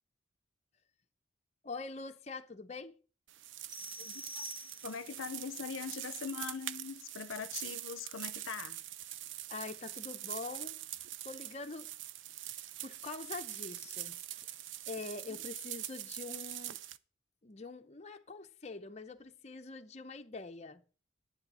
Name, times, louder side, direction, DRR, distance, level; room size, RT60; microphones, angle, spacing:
voice 1, 1.6-2.9 9.5-10.8 11.2-11.9 12.8-14.2 14.9-16.8 17.4-20.8, left 3 dB, 35° left, 0.6 m, -44 dB
sound 1, 3.3-17.0, right 13 dB, 70° right, 0.5 m, -44 dB
sound 2, 3.7-5.2, left 1 dB, 5° right, 1.9 m, -47 dB
voice 2, 4.0-4.5 4.8-8.8 15.3-15.5, left 6 dB, 85° left, 0.6 m, -42 dB
10.5 x 9.6 x 4.1 m
head